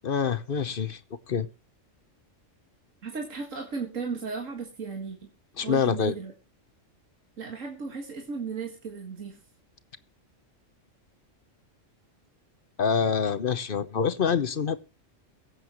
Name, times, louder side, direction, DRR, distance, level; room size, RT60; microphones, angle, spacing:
voice 1, 0.0-1.0 1.3-1.5 5.6-6.1 12.8-14.8, left 6 dB, 50° left, 1.0 m, -26 dB
voice 2, 3.0-5.3 5.6-6.3 7.4-9.4, right 5 dB, 80° right, 2.3 m, -35 dB
23.0 x 8.1 x 3.0 m
omnidirectional pair, 1.3 m